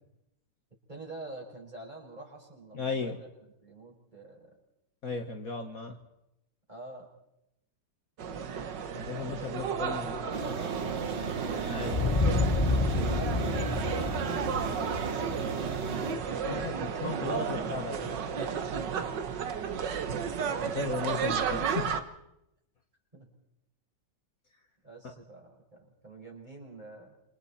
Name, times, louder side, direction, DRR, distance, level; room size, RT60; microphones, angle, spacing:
voice 1, 0.9-4.6 6.7-7.1 9.4-12.9 13.2-15.3 17.4-18.9 23.1-23.3 24.8-27.2, right 2 dB, 25° right, 0 dB, 5.5 m, -47 dB
voice 2, 2.7-3.2 5.0-5.9 8.9-10.2 11.7-12.0 16.5-18.1 20.6-22.0, left 4 dB, 50° left, 4 dB, 1.8 m, -35 dB
sound 1, 8.2-22.0, right 6 dB, 75° right, 1.9 m, -33 dB
sound 2, 10.3-16.1, right 5 dB, 40° right, 1.4 m, -36 dB
sound 3, 11.8-16.4, left 3 dB, 30° left, 0.5 m, -30 dB
27.5 x 26.0 x 4.3 m, 0.86 s
omnidirectional pair, 1.9 m